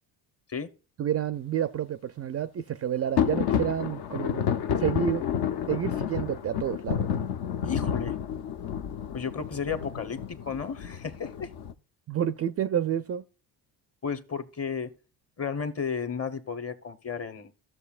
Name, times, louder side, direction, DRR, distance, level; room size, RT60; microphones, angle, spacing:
voice 1, 1.0-4.5 4.8-5.2 5.7-7.1 12.1-13.2, right 9 dB, 35° right, 0.4 m, -29 dB
sound 1, 3.2-11.7, left 8 dB, 55° left, 0.7 m, -30 dB
voice 2, 7.6-8.2 9.1-11.5 14.0-14.9 15.4-17.5, left 6 dB, 30° left, 1.0 m, -33 dB
13.5 x 6.8 x 2.4 m
supercardioid pair, 65°, 45 cm